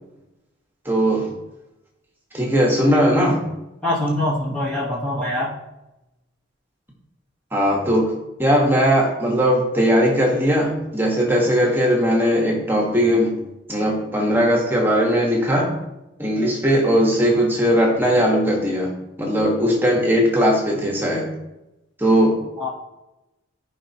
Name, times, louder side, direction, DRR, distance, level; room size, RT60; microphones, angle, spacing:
voice 1, 0.8-1.3 2.3-3.5 7.5-8.1 8.4-13.4 13.7-15.7 16.2-18.9 19.2-21.3 22.0-22.4, equal, 10° right, -2 dB, 1.5 m, -19 dB
voice 2, 3.8-5.6 22.6-22.7, left 1 dB, 5° left, -7 dB, 1.4 m, -23 dB
14.0 x 5.3 x 3.0 m, 0.94 s
head